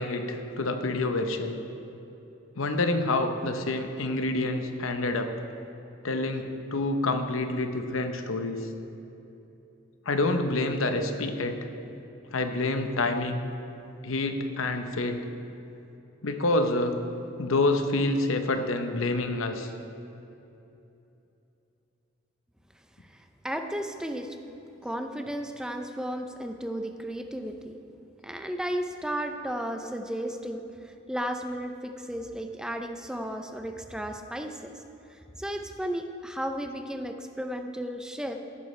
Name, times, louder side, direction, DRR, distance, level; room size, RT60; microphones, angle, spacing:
voice 1, 0.0-1.6 2.6-5.3 6.0-8.7 10.1-11.6 12.3-13.5 14.0-15.2 16.2-17.0 17.4-19.7, left 2 dB, 90° left, 6 dB, 0.8 m, -27 dB
voice 2, 23.1-24.4 24.8-27.8 28.2-34.8 35.1-38.4, equal, 5° right, 5 dB, 0.4 m, -34 dB
14.0 x 11.0 x 3.2 m, 2.9 s
head